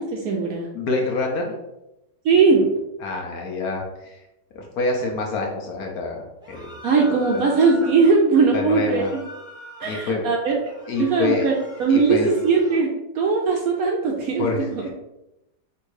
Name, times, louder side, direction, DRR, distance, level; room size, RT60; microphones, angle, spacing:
voice 1, 0.0-0.7 2.2-2.6 6.8-9.2 9.8-10.6 11.0-14.8, right 4 dB, 70° right, 0 dB, 0.9 m, -20 dB
voice 2, 0.7-1.5 3.0-4.2 4.5-6.8 7.0-7.1 8.5-9.1 9.8-10.2 10.9-11.5 11.9-12.3 14.4-14.9, left 3 dB, 65° left, 0 dB, 1.1 m, -27 dB
sound 1, 6.4-8.1 8.8-10.1 10.5-12.9, left 1 dB, 5° right, 0.5 m, -42 dB
3.6 x 2.6 x 4.7 m, 0.93 s
omnidirectional pair, 1.9 m